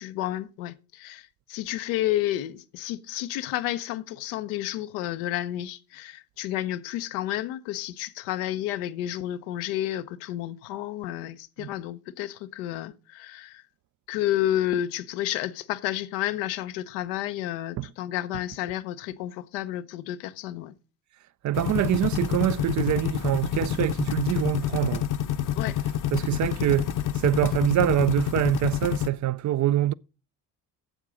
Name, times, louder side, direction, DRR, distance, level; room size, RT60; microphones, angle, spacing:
voice 1, 0.0-13.6 14.1-20.7 25.5-25.8, left 13 dB, 85° left, 0.8 m, -31 dB
voice 2, 21.4-25.0 26.1-26.9 27.2-29.9, right 13 dB, 40° right, 0.4 m, -25 dB
sound 1, 21.5-29.1, left 10 dB, 45° left, 0.8 m, -28 dB
8.9 x 7.4 x 6.2 m
supercardioid pair, 65°, 45 cm